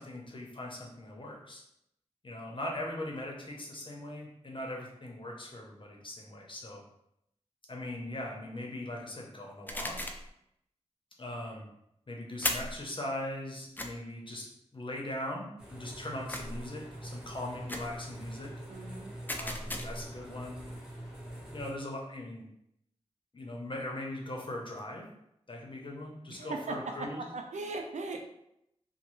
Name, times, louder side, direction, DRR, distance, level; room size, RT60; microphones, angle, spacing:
voice 1, 0.0-1.6 2.2-6.8 7.7-10.0 11.2-11.7 12.1-14.4 14.7-18.5 19.4-20.6 21.5-22.5 23.3-25.0 25.5-27.2, left 1 dB, 45° left, -1 dB, 0.7 m, -40 dB
sound 1, 9.7-10.3 12.4-12.8 13.8-13.9 16.3-16.7 17.7-18.0 19.3-20.1, left 1 dB, 15° left, 0.3 m, -36 dB
sound 2, 15.6-21.7, right 1 dB, 5° right, 0.9 m, -44 dB
voice 2, 18.7-19.2 26.3-28.2, right 3 dB, 85° right, 4 dB, 0.4 m, -38 dB
3.1 x 2.1 x 3.0 m, 0.78 s
wide cardioid pair, 60°, 12 cm